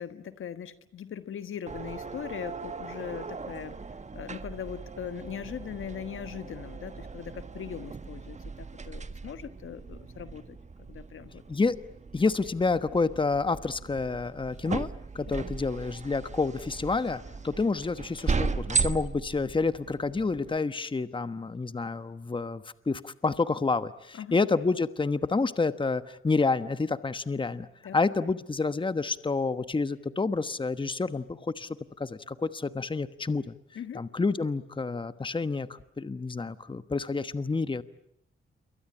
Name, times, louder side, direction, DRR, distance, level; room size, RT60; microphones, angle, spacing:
voice 1, 0.0-3.8 4.1-10.6 10.9-11.4 24.1-24.4 27.8-28.0 33.7-34.0, left 8 dB, 75° left, 11 dB, 1.4 m, -40 dB
sound 1, 1.7-20.6, right 4 dB, 35° right, 1.4 m, -37 dB
voice 2, 12.1-14.9 15.1-27.7 27.9-31.7 32.0-33.6 33.9-37.8, left 4 dB, 25° left, 12 dB, 1.2 m, -29 dB
28.0 x 23.5 x 8.7 m, 0.73 s
cardioid pair, 90°, 21 cm